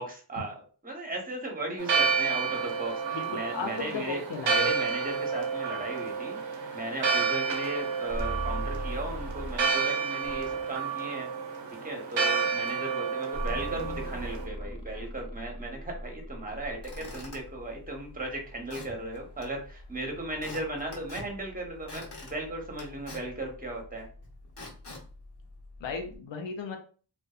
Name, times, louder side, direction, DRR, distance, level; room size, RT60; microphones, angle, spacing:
voice 1, 0.0-6.4 6.7-11.3 11.8-24.1, right 2 dB, 20° right, 1 dB, 0.9 m, -37 dB
Church bell, 1.8-14.5, right 5 dB, 85° right, 0.6 m, -30 dB
voice 2, 3.1-4.7 25.8-26.8, left 5 dB, 80° left, 4 dB, 0.5 m, -35 dB
sound 1, 6.8-9.8 10.2-10.8 13.3-17.4, equal, 10° left, 0.8 m, -39 dB
Squeak / Wood, 16.6-26.2, left 2 dB, 60° left, 1.1 m, -47 dB
2.6 x 2.2 x 2.3 m, 0.40 s
cardioid pair, 45°, 44 cm